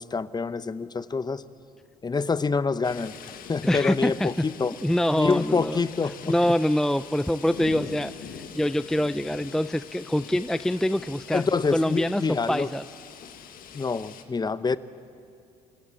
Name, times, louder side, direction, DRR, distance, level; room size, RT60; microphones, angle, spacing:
voice 1, 0.0-1.4 2.0-4.7 5.1-6.5 11.3-12.7 13.7-14.8, left 4 dB, 25° left, 15 dB, 0.8 m, -26 dB
sound 1, 2.8-14.2, left 8 dB, 60° left, 1.7 m, -44 dB
voice 2, 3.6-4.3 4.8-5.8 6.3-12.8, equal, 5° left, 14 dB, 0.5 m, -25 dB
28.0 x 16.0 x 8.3 m, 2.4 s
supercardioid pair, 65°, 16 cm